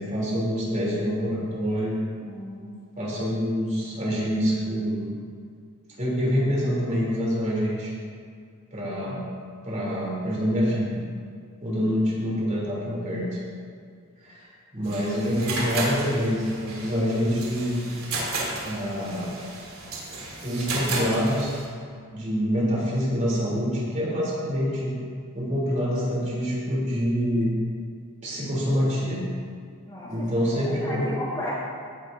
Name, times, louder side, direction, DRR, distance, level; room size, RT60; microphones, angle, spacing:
voice 1, 0.0-2.0 3.0-5.1 6.0-7.9 8.7-9.2 9.6-11.0 11.6-13.4 14.2-14.5 14.7-17.8 18.6-19.4 20.4-21.5 22.1-24.9 25.3-27.5 28.2-29.2 30.1-31.1, equal, 35° right, -6 dB, 3.4 m, -26 dB
voice 2, 2.3-2.9 29.9-30.3 30.8-31.5, left 1 dB, 20° left, -8 dB, 2.2 m, -34 dB
sound 1, 14.8-21.7, right 2 dB, 70° right, 3.2 m, -33 dB
17.0 x 10.5 x 2.7 m, 2.2 s
head